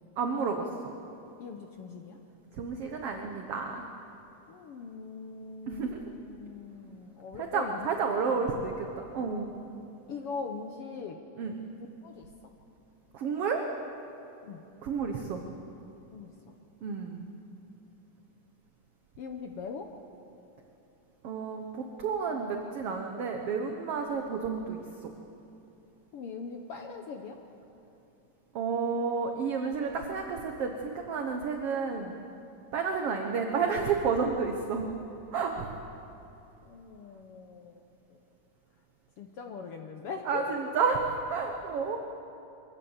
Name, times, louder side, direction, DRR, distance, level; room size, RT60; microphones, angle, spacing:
voice 1, 0.2-0.7 2.6-3.8 5.7-6.0 7.4-9.5 11.4-11.5 13.1-13.6 14.8-15.4 16.8-17.2 21.2-25.1 28.5-32.2 32.7-34.9 35.3-35.7 40.3-41.0 41.3-42.0, right 5 dB, 60° right, 3 dB, 1.7 m, -31 dB
voice 2, 1.4-2.2 4.5-8.5 8.8-9.0 10.1-11.2 12.0-12.3 14.4-14.6 16.1-16.3 19.2-19.9 26.1-27.4 36.6-37.8 39.2-40.5, left 5 dB, 70° left, 4 dB, 1.4 m, -41 dB
23.5 x 15.0 x 8.0 m, 2.8 s
omnidirectional pair, 3.7 m